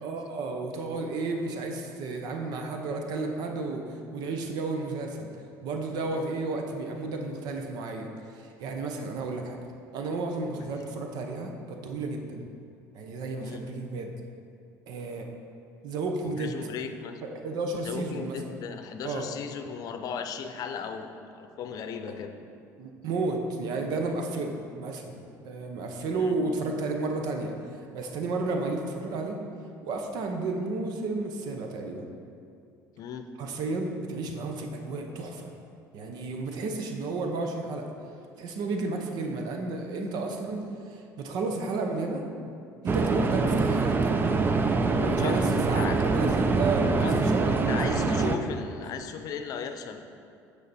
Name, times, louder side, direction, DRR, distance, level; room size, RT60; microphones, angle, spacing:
voice 1, 0.0-5.3 5.6-9.6 9.9-12.4 12.9-14.1 14.9-15.3 15.8-16.5 17.2-18.8 19.0-19.3 22.8-27.5 27.9-29.4 29.8-32.1 33.4-35.5 35.9-37.9 38.4-42.3 42.8-44.3 45.0-47.8 48.2-48.3 48.9-49.1, right 3 dB, 70° right, 3 dB, 0.8 m, -32 dB
voice 2, 16.2-17.2 17.8-22.3 26.1-26.4 33.0-33.3 45.2-46.4 47.0-50.0, left 7 dB, 60° left, 7 dB, 0.6 m, -37 dB
sound 1, 42.9-48.4, right 3 dB, 30° right, 0.5 m, -24 dB
9.5 x 4.9 x 4.2 m, 2.5 s
cardioid pair, 105°, 7 cm